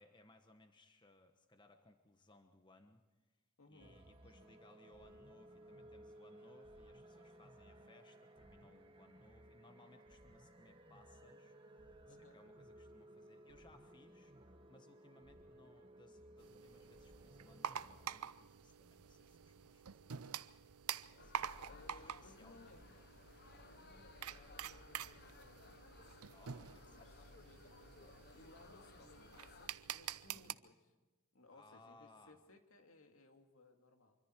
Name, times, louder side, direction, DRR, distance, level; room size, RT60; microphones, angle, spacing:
voice 1, 0.0-3.0 3.7-20.4 20.8-23.1 23.4-23.6 26.3-27.1 28.9-29.1 30.3-30.6 31.5-32.4, left 2 dB, 20° left, 6 dB, 1.1 m, -66 dB
voice 2, 3.6-4.0 12.1-12.4 21.7-22.8 23.7-25.7 26.5-30.9 31.3-34.2, left 2 dB, 70° left, 4 dB, 2.3 m, -63 dB
sound 1, 3.8-18.2, right 1 dB, 25° right, 1.4 m, -59 dB
sound 2, 16.4-30.5, right 9 dB, 85° right, 0.6 m, -48 dB
sound 3, 21.2-29.7, left 4 dB, 50° left, 0.8 m, -60 dB
25.5 x 24.5 x 4.5 m, 1.2 s
head